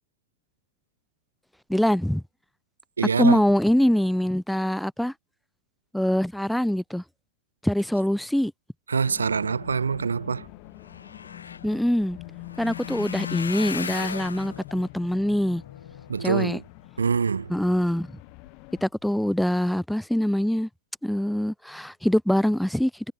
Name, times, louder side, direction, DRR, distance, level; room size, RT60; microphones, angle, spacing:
voice 1, 1.7-2.2 3.2-5.1 5.9-7.0 7.6-8.5 11.6-12.2 12.6-15.6 16.2-16.6 17.5-18.1 18.8-20.7 21.0-22.9, equal, ahead, 0.6 m, -24 dB
voice 2, 3.0-3.4 8.9-10.5 16.1-16.6 17.0-17.5, right 5 dB, 75° right, 2.2 m, -25 dB
sound 1, 9.0-18.9, left 30 dB, 45° left, 3.0 m, -43 dB
sound 2, 10.5-16.9 17.4-17.9 18.3-18.5 18.8-18.9, left 5 dB, 75° left, 3.9 m, -38 dB
figure-of-eight pair, 90°, 0 cm